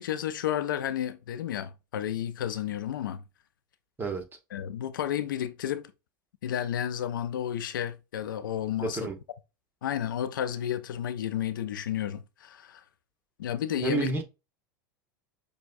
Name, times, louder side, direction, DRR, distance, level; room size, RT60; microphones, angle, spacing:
voice 1, 0.0-3.2 4.5-5.9 6.4-9.1 9.8-12.8 13.4-14.1, left 10 dB, 80° left, 0.5 m, -32 dB
voice 2, 8.8-9.1 13.7-14.2, right 4 dB, 20° right, 1.3 m, -30 dB
6.2 x 2.3 x 2.5 m
hypercardioid pair, 95°, 11 cm